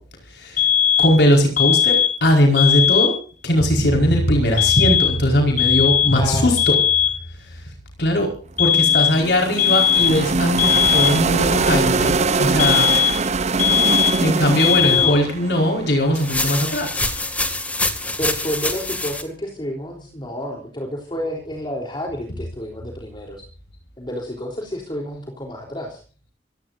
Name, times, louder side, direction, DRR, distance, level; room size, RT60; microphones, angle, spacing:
voice 1, 0.3-0.7 1.0-3.2 3.4-6.8 8.0-8.3 8.6-13.0 14.2-17.0, equal, 65° left, 1 dB, 4.9 m, -19 dB
sound 1, 0.6-1.2 1.6-2.2 2.6-3.2 4.6-5.3 5.6-6.2 6.6-7.2 8.6-9.2 9.6-10.3 10.6-11.3 12.6-13.3 13.6-14.3 14.6-15.3, left 8 dB, 45° left, 2.8 m, -18 dB
voice 2, 6.1-6.8 14.8-15.1 18.2-23.4 24.0-26.0, equal, 25° left, 0 dB, 3.5 m, -29 dB
sound 2, 8.6-16.7, right 4 dB, 40° right, 0.7 m, -22 dB
sound 3, 16.2-19.2, left 2 dB, 10° left, 2.3 m, -25 dB
26.0 x 17.0 x 2.6 m, 0.39 s
head